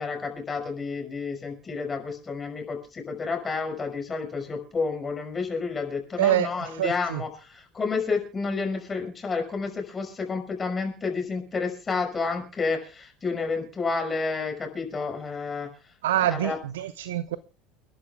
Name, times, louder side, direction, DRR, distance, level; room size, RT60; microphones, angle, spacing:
voice 1, 0.0-15.7 16.2-16.6, left 4 dB, 25° left, 5.9 m, -30 dB
voice 2, 6.2-6.5 6.8-7.2 16.0-17.4, right 12 dB, 70° right, 0.6 m, -25 dB
30.0 x 11.5 x 2.3 m
figure-of-eight pair, 70°, 0 cm